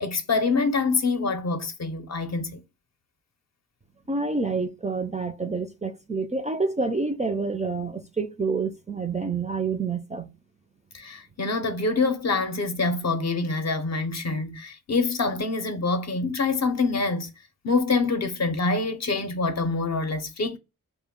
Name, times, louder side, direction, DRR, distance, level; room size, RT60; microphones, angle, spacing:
voice 1, 0.0-2.6 10.9-17.3 17.6-20.6, left 3 dB, 50° left, 0.5 m, -25 dB
voice 2, 4.1-10.3, right 4 dB, 20° right, 0.3 m, -28 dB
2.2 x 2.0 x 3.5 m
cardioid pair, 65°, 35 cm